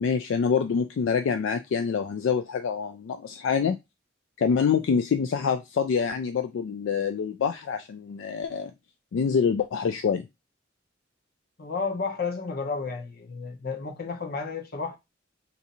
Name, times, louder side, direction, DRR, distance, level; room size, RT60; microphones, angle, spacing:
voice 1, 0.0-3.8 4.4-8.7 9.1-10.3, left 6 dB, 70° left, 0.3 m, -26 dB
voice 2, 11.6-15.0, left 4 dB, 50° left, 0.8 m, -32 dB
2.7 x 2.5 x 4.1 m
head